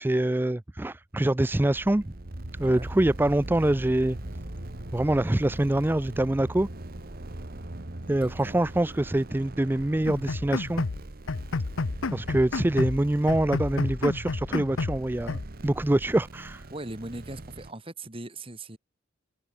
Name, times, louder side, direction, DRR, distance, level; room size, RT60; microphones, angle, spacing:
voice 1, 0.0-2.1 2.6-4.2 4.9-6.7 8.1-10.8 12.1-16.7, right 1 dB, 10° right, 0.4 m, -25 dB
sound 1, 1.1-17.7, right 2 dB, 45° right, 1.2 m, -42 dB
sound 2, 2.2-8.8, right 1 dB, 70° right, 3.9 m, -41 dB
voice 2, 8.1-8.6 16.7-18.8, right 2 dB, 25° right, 2.2 m, -40 dB
sound 3, 10.1-11.0 11.3-13.0 13.3-15.0 15.3-15.5, left 3 dB, 80° left, 0.7 m, -31 dB
open air
head